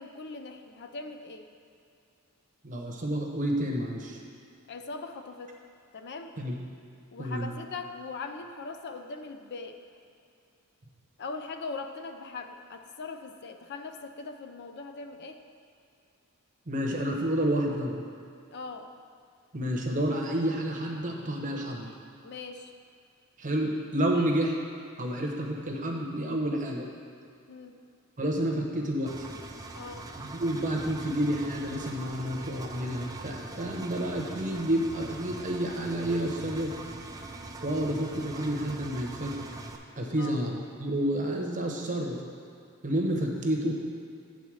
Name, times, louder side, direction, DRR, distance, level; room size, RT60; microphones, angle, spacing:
voice 1, 0.0-1.5 4.7-5.6 5.9-6.3 7.1-9.8 11.2-15.4 18.5-18.9 22.2-22.7 24.1-24.3 27.5-27.7 29.7-30.1 40.2-40.4, left 4 dB, 50° left, 7 dB, 0.5 m, -40 dB
voice 2, 2.6-4.2 6.4-6.6 7.2-7.5 16.7-18.0 19.5-21.9 23.4-24.5 25.0-26.9 28.2-29.2 30.2-36.7 37.6-39.3 40.0-40.5 40.8-42.2 42.8-43.7, right 1 dB, 35° right, 0 dB, 0.9 m, -29 dB
Engine, 29.1-39.8, right 2 dB, 15° right, 0.4 m, -42 dB
8.4 x 4.0 x 6.3 m, 2.5 s
head